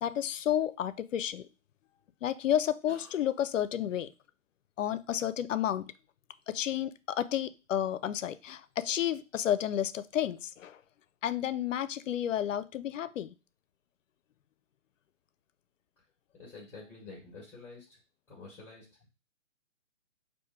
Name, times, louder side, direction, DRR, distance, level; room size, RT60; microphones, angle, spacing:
voice 1, 0.0-1.5 2.2-4.1 4.8-5.9 6.5-10.8 11.2-13.3, left 10 dB, 70° left, 0.5 m, -31 dB
voice 2, 16.3-18.0 18.3-19.1, left 3 dB, 5° left, 1.0 m, -49 dB
4.2 x 2.6 x 3.6 m
hypercardioid pair, 145°, 39 cm